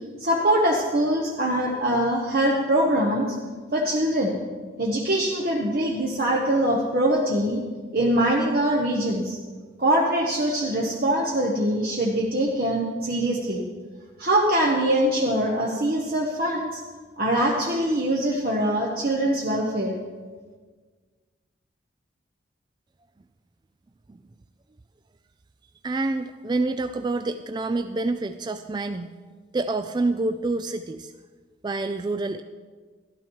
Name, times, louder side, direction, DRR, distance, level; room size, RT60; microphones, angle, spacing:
voice 1, 0.2-3.3 3.7-4.4 4.8-7.6 7.9-9.4 9.8-13.6 14.2-16.8 17.2-20.0, right 1 dB, 50° right, -2 dB, 1.1 m, -23 dB
voice 2, 25.8-29.1 29.5-31.1 31.6-32.4, right 2 dB, 25° right, 9 dB, 0.3 m, -27 dB
12.5 x 12.0 x 4.6 m, 1.5 s
head